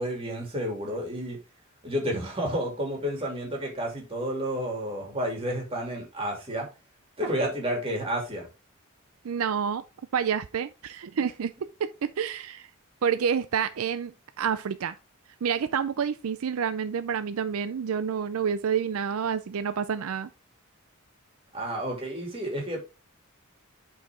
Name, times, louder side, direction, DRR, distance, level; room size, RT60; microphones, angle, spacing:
voice 1, 0.0-1.4 1.8-6.7 7.2-8.5 21.5-22.8, equal, 25° right, 2.8 m, -31 dB
voice 2, 9.2-9.8 10.1-11.5 11.8-12.7 13.0-15.0 15.4-20.3, right 7 dB, 75° right, 0.4 m, -28 dB
8.5 x 4.7 x 3.7 m
head